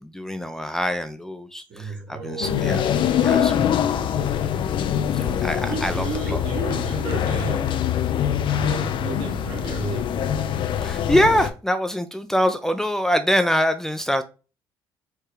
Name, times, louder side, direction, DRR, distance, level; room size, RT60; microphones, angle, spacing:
voice 1, 0.0-2.8 3.2-3.6 5.1-6.4 10.8-14.2, equal, 5° left, 0.5 m, -24 dB
voice 2, 1.7-2.8 3.2-4.3 5.7-7.9 8.5-10.2, right 3 dB, 60° right, 1.9 m, -33 dB
sound 1, 2.4-11.5, left 9 dB, 60° left, 0.5 m, -24 dB
4.7 x 2.2 x 4.8 m
supercardioid pair, 70°, 9 cm